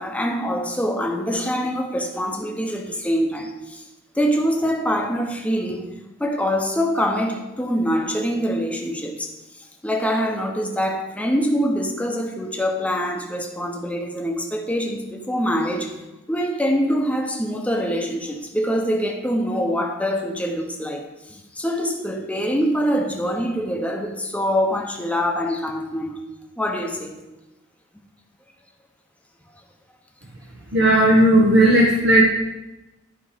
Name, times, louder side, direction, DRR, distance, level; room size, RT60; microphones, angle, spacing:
voice 1, 0.0-3.8 4.1-5.9 6.2-9.3 9.8-15.9 16.3-26.2 26.6-27.2, equal, 5° left, 1.1 m, -24 dB
voice 2, 30.7-32.2, right 1 dB, 60° right, 1.2 m, -15 dB
11.5 x 5.0 x 5.2 m
head